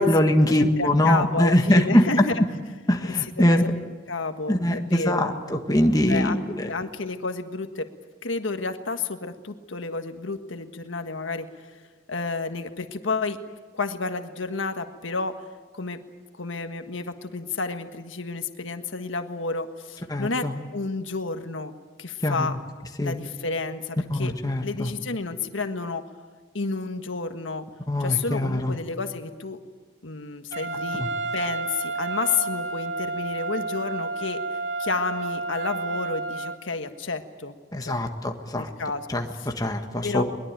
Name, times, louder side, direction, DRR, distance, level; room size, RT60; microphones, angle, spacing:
voice 1, 0.0-2.0 2.9-3.6 4.5-6.7 20.1-20.5 22.2-22.5 23.0-23.2 24.1-24.9 27.9-28.8 37.7-38.7 39.1-40.2, left 1 dB, 20° left, 4 dB, 1.7 m, -22 dB
voice 2, 0.6-2.2 3.0-3.7 4.1-5.3 6.1-7.9 8.2-11.5 12.1-13.4 13.7-15.3 15.7-16.0 16.4-22.6 23.0-24.3 24.6-26.0 26.5-27.6 28.0-29.6 30.0-31.0 31.3-37.6 37.9-38.0 38.5-39.1 39.3-39.5 40.0-40.2, left 4 dB, 85° left, 7 dB, 1.5 m, -31 dB
Trumpet, 30.5-36.6, right 3 dB, 65° right, 2.0 m, -30 dB
22.0 x 21.0 x 9.0 m, 1.4 s
head